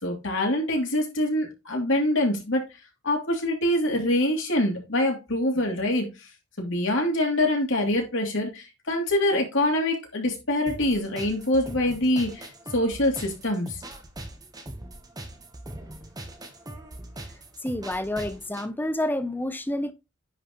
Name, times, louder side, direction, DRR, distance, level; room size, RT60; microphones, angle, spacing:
voice 1, 0.0-2.6 3.0-6.1 6.6-12.5 12.7-13.8, left 1 dB, 65° left, 2.9 m, -25 dB
sound 1, 10.7-18.7, right 1 dB, 20° right, 1.0 m, -41 dB
voice 2, 17.6-19.9, left 1 dB, 10° left, 0.7 m, -29 dB
9.9 x 4.5 x 3.0 m
head